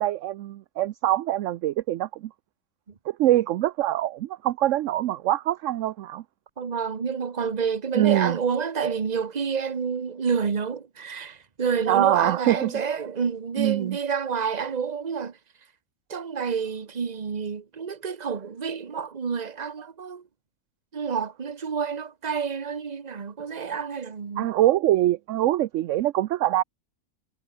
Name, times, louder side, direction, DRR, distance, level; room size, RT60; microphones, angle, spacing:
voice 1, 0.0-2.3 3.1-6.2 8.0-8.4 11.9-12.7 13.6-14.0 24.4-26.6, right 14 dB, 70° right, 0.8 m, -24 dB
voice 2, 6.6-15.4 16.1-20.2 20.9-24.5, right 6 dB, 30° right, 1.1 m, -29 dB
omnidirectional pair, 1.6 m